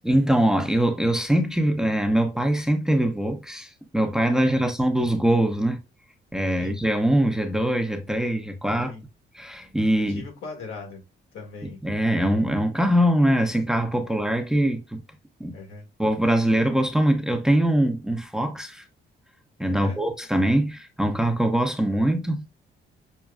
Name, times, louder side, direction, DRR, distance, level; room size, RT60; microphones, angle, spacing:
voice 1, 0.0-5.8 6.3-8.9 9.3-10.2 11.8-15.0 15.4-15.5 16.0-18.8 19.6-22.4, right 1 dB, 5° right, 0.7 m, -22 dB
voice 2, 10.0-11.0 11.3-11.8 14.0-14.3 15.5-15.9 19.7-20.0, left 3 dB, 80° left, 1.7 m, -39 dB
6.2 x 2.2 x 2.3 m
cardioid pair, 90°, 20 cm